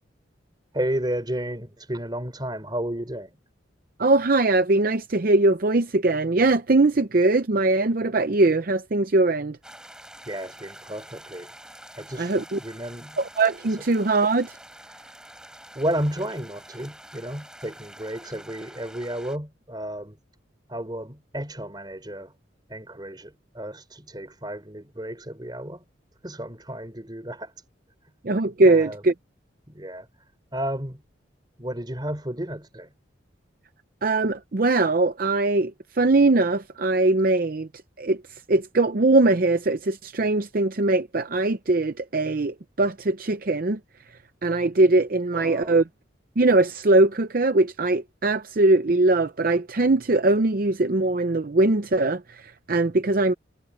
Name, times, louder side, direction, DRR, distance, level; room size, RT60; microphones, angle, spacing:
voice 1, 0.7-3.4 10.3-11.5 12.0-13.2 15.7-20.2 20.7-22.3 22.7-25.8 26.2-27.5 28.6-29.0 29.7-30.1 30.5-31.0 31.6-32.9 45.3-45.8, right 1 dB, 20° right, 4.0 m, -32 dB
voice 2, 4.0-9.6 12.2-12.6 13.2-14.6 28.2-29.1 34.0-37.7 38.0-43.8 44.4-45.8 46.4-53.3, right 2 dB, 45° right, 0.6 m, -21 dB
sound 1, 9.6-19.4, right 1 dB, 5° right, 6.3 m, -47 dB
head